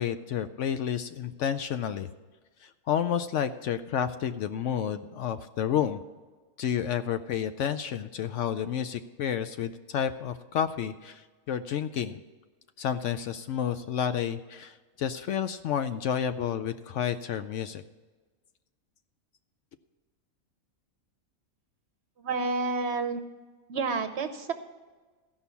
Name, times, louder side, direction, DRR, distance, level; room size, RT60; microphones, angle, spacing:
voice 1, 0.0-2.1 2.6-6.0 6.6-11.2 11.5-12.2 12.8-17.8, left 9 dB, 70° left, 10 dB, 0.8 m, -30 dB
voice 2, 22.2-23.2 23.7-24.5, right 4 dB, 55° right, 8 dB, 0.9 m, -29 dB
14.5 x 5.6 x 6.9 m, 1.3 s
omnidirectional pair, 1.5 m